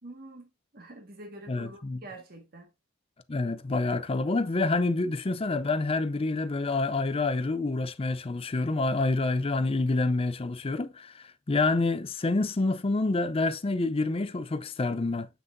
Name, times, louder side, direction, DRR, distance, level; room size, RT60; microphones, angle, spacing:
voice 1, 0.0-2.7, right 2 dB, 50° right, 1.6 m, -46 dB
voice 2, 1.5-2.0 3.3-15.3, left 3 dB, 30° left, 0.5 m, -27 dB
6.8 x 6.0 x 2.6 m
head